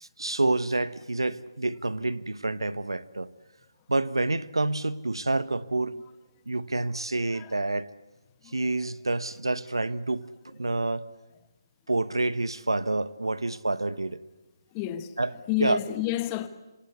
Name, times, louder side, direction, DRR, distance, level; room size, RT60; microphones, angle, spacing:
voice 1, 0.0-3.3 3.9-6.0 6.5-7.9 8.5-11.1 11.9-14.2 15.2-15.3 15.6-15.8, right 2 dB, 85° right, 1.2 m, -28 dB
voice 2, 7.3-7.6 8.4-8.5 14.7-15.2 15.5-16.5, left 13 dB, 20° left, 1.4 m, -30 dB
27.0 x 26.5 x 8.2 m
figure-of-eight pair, 150°, 2 cm